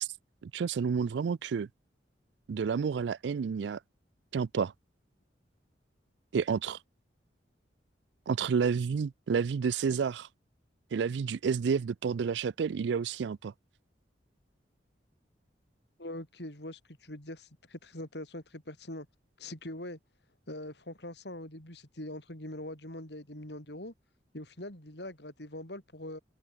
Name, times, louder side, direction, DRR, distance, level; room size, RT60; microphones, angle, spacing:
voice 1, 0.4-1.7 2.5-3.8 4.3-4.7 6.3-6.8 8.3-10.3 10.9-13.5, right 6 dB, 70° right, 0.4 m, -30 dB
voice 2, 16.0-19.1 19.4-20.0 20.5-23.9 24.3-26.2, left 1 dB, 65° left, 5.5 m, -42 dB
open air
head